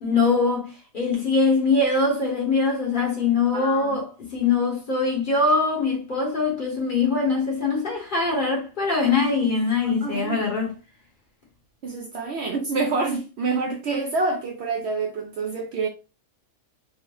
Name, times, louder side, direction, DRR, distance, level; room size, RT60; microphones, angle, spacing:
voice 1, 0.0-10.7, left 4 dB, 40° left, 1.1 m, -22 dB
voice 2, 3.5-4.0 10.0-10.5 11.8-15.9, right 3 dB, 65° right, 0.7 m, -27 dB
3.7 x 2.1 x 3.1 m
omnidirectional pair, 1.4 m